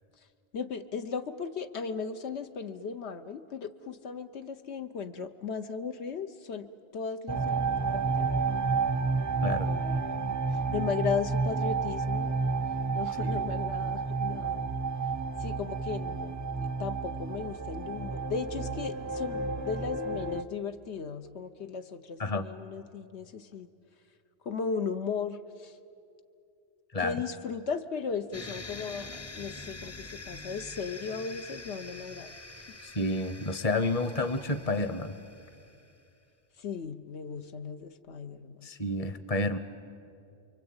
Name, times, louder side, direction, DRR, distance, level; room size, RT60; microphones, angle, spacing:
voice 1, 0.5-8.6 9.6-10.2 10.5-12.4 12.9-14.7 15.4-23.7 24.4-25.8 27.0-32.6 36.6-38.7, left 5 dB, 85° left, 8 dB, 1.2 m, -36 dB
sound 1, 7.3-20.4, right 4 dB, 20° right, 0.5 m, -30 dB
sound 2, 28.3-35.9, left 2 dB, 15° left, 0.7 m, -45 dB
voice 2, 32.8-35.1 38.6-39.6, left 2 dB, 35° left, 11 dB, 1.1 m, -30 dB
29.0 x 23.5 x 8.8 m, 2.5 s
omnidirectional pair, 1.1 m